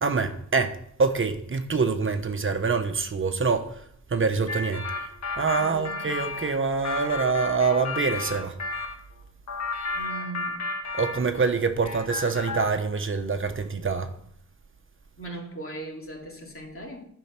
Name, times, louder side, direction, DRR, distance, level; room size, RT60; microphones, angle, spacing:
voice 1, 0.0-3.8 4.1-4.8 5.4-8.6 10.9-14.1, right 4 dB, 45° right, 1.1 m, -25 dB
sound 1, 4.5-8.9 9.5-11.6 11.8-12.8, left 3 dB, 65° left, 1.7 m, -33 dB
voice 2, 5.5-6.0 9.9-10.7 11.1-11.4 15.2-17.0, right 2 dB, 45° left, 3.1 m, -39 dB
10.5 x 5.6 x 5.9 m
cardioid pair, 70°, 30 cm